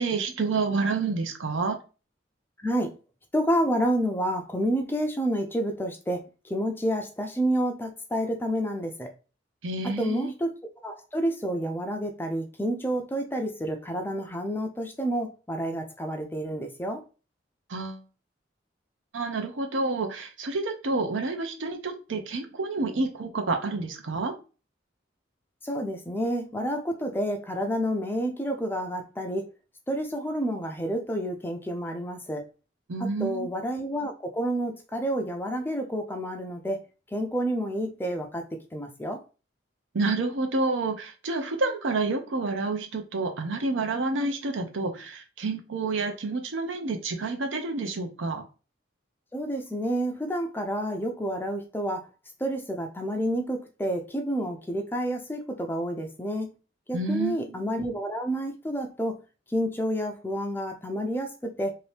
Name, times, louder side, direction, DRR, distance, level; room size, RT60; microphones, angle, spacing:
voice 1, 0.0-1.8 9.6-10.3 17.7-18.0 19.1-24.3 32.9-33.5 39.9-48.4 56.9-57.7, right 3 dB, 80° right, 5 dB, 0.6 m, -29 dB
voice 2, 2.6-2.9 3.3-6.2 6.5-9.1 9.8-10.5 10.8-17.0 25.6-29.5 29.9-32.4 33.0-36.8 37.1-38.4 38.7-39.2 49.3-52.1 52.4-56.5 56.9-59.2 59.5-61.7, equal, 10° left, 5 dB, 0.4 m, -29 dB
2.8 x 2.6 x 3.3 m, 0.33 s
head